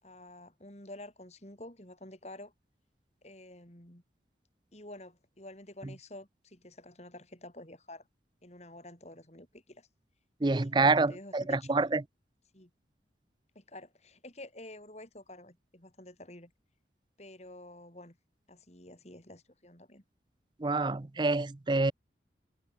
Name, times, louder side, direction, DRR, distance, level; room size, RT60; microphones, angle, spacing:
voice 1, 0.0-2.5 3.2-4.0 4.7-8.1 8.4-9.9 10.5-11.9 12.5-12.7 13.5-16.5 17.2-18.2 18.5-20.0, left 1 dB, 35° left, 5.2 m, -49 dB
voice 2, 10.4-12.0 20.6-21.9, right 3 dB, 25° right, 0.5 m, -27 dB
head